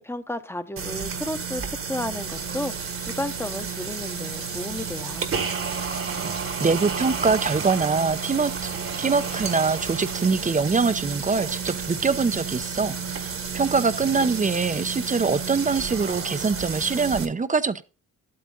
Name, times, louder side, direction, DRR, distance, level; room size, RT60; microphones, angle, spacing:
voice 1, 0.0-5.3, left 1 dB, 5° left, 1.1 m, -33 dB
sound 1, 0.8-17.3, right 5 dB, 45° right, 1.5 m, -31 dB
voice 2, 6.6-8.7 9.0-17.8, right 4 dB, 25° right, 0.8 m, -24 dB
11.5 x 8.6 x 3.9 m
cardioid pair, 100°, 32 cm